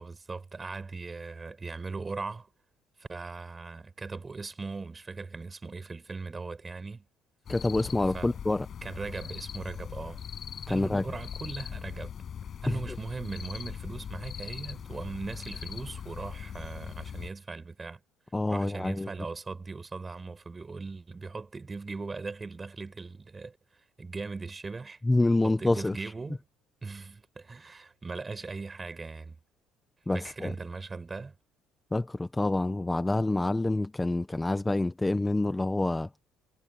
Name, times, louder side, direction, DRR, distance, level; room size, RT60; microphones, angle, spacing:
voice 1, 0.0-2.5 3.0-7.1 8.1-8.4 8.8-10.2 10.7-12.1 12.6-18.0 18.5-23.6 24.0-25.0 25.4-26.4 26.8-29.4 30.1-31.3, right 4 dB, 20° right, 6.9 m, -39 dB
sound 1, 7.4-17.3, left 8 dB, 40° left, 7.2 m, -40 dB
voice 2, 7.5-8.7 10.7-11.0 12.7-12.8 18.3-19.1 25.0-26.1 30.1-30.5 31.9-36.1, left 2 dB, 10° left, 0.9 m, -27 dB
cardioid pair, 115°, 0 cm